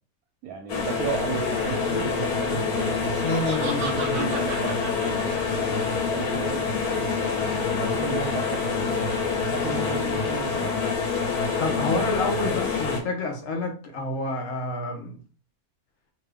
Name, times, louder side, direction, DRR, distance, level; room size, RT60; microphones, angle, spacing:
voice 1, 0.4-3.0 3.5-5.7 6.1-7.2 7.8-10.7, right 6 dB, 75° right, 1.0 m, -35 dB
sound 1, 0.7-13.0, left 5 dB, 80° left, 1.4 m, -26 dB
Laughter, 3.0-6.1, right 3 dB, 55° right, 0.9 m, -36 dB
voice 2, 3.2-4.2 11.6-15.2, left 2 dB, 65° left, 1.1 m, -29 dB
2.9 x 2.5 x 3.3 m
omnidirectional pair, 1.6 m